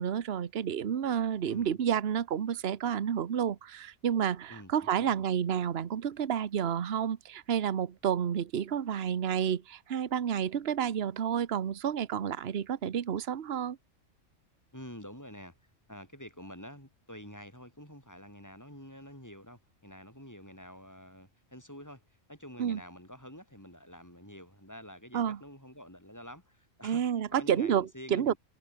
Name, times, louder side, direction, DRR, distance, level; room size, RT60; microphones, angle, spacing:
voice 1, 0.0-13.8 22.6-22.8 25.1-25.4 26.8-28.3, right 8 dB, 55° right, 1.2 m, -30 dB
voice 2, 4.5-5.2 14.7-15.6 15.9-22.0 22.3-27.0 27.3-28.4, equal, 15° left, 7.5 m, -48 dB
omnidirectional pair, 1.4 m